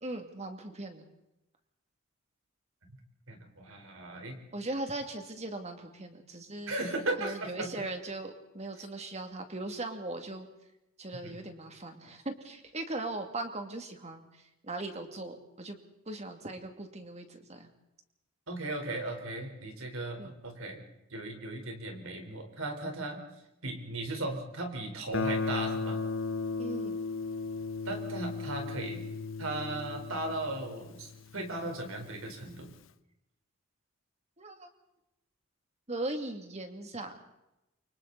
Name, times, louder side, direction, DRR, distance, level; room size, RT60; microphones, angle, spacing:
voice 1, 0.0-1.0 4.5-6.7 7.2-10.5 11.0-15.8 16.1-17.7 20.2-20.4 26.6-27.0 34.4-34.7 35.9-37.2, right 2 dB, 30° right, 5 dB, 2.4 m, -39 dB
voice 2, 3.3-4.4 6.7-7.7 11.2-11.3 18.5-20.8 21.1-23.2 23.6-26.0 27.8-29.0 29.4-32.7, right 2 dB, 75° right, 3 dB, 4.3 m, -37 dB
Guitar, 25.1-31.9, left 4 dB, 65° left, 0.7 m, -35 dB
29.5 x 25.0 x 4.1 m, 0.90 s
head